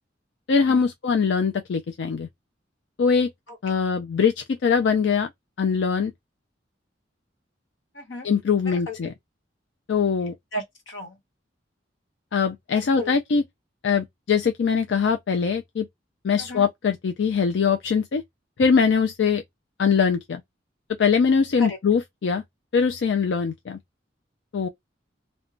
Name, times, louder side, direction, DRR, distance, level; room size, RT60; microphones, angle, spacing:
voice 1, 0.5-2.3 3.0-3.3 3.6-5.3 5.6-6.1 8.2-9.1 9.9-10.3 12.3-13.4 13.8-15.9 16.2-18.2 18.6-19.4 19.8-20.4 21.0-22.4 22.7-23.8 24.5-24.7, left 6 dB, 65° left, 0.4 m, -22 dB
voice 2, 7.9-8.3 8.7-9.1 10.5-11.2 13.0-13.1 16.4-16.7 21.7-21.8, equal, 85° left, 1.1 m, -35 dB
3.0 x 2.2 x 2.5 m
head